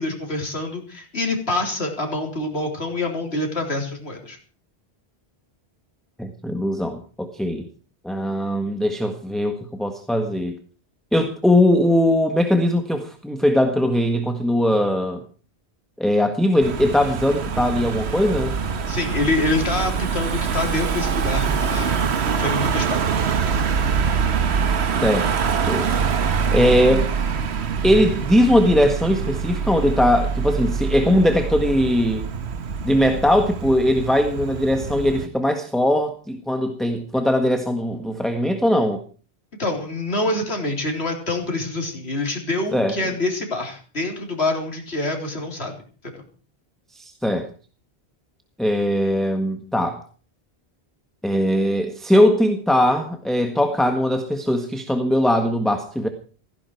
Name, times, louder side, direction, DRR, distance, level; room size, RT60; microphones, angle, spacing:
voice 1, 0.0-4.4 18.9-23.1 39.6-45.7 46.0-46.2, left 2 dB, 80° left, 2 dB, 3.9 m, -26 dB
voice 2, 6.2-7.7 8.0-10.6 11.1-15.2 16.0-18.5 25.0-25.3 25.6-25.9 26.5-27.1 27.8-32.3 32.8-39.0 42.7-42.9 46.9-47.5 48.6-50.0 51.2-56.1, left 1 dB, ahead, 6 dB, 1.5 m, -20 dB
Car passing by / Engine, 16.6-35.3, right 6 dB, 90° right, 1.3 m, -24 dB
17.5 x 16.0 x 4.7 m, 0.39 s
omnidirectional pair, 1.1 m